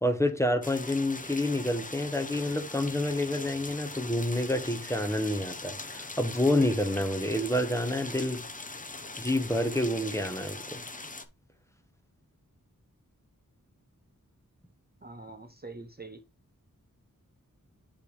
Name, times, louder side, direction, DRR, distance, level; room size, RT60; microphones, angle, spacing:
voice 1, 0.0-8.4 9.2-10.8, left 1 dB, 10° left, 1.1 m, -28 dB
sound 1, 0.6-11.2, left 3 dB, 25° left, 0.8 m, -41 dB
voice 2, 15.0-16.2, right 3 dB, 30° right, 0.7 m, -44 dB
7.6 x 3.4 x 5.2 m
wide cardioid pair, 65°, 34 cm